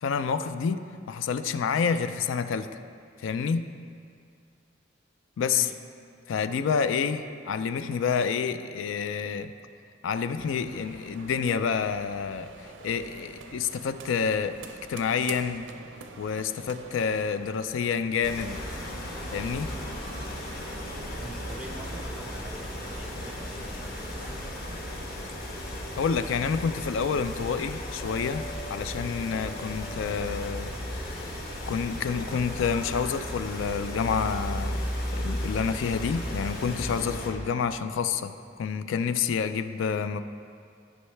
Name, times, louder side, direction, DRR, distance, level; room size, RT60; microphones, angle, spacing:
voice 1, 0.0-2.8 3.2-3.7 5.4-5.7 6.3-9.5 10.0-14.6 14.9-15.7 16.2-18.8 19.3-19.7 26.0-31.4 31.7-34.8 35.1-40.2, left 6 dB, 85° left, 11 dB, 0.4 m, -28 dB
voice 2, 5.5-5.8 21.1-24.8, equal, 5° right, 4 dB, 0.4 m, -46 dB
sound 1, 10.4-25.0, right 4 dB, 80° right, 0.5 m, -47 dB
sound 2, 18.2-37.3, equal, 50° left, 1.3 m, -35 dB
12.5 x 5.4 x 3.3 m, 2.3 s
head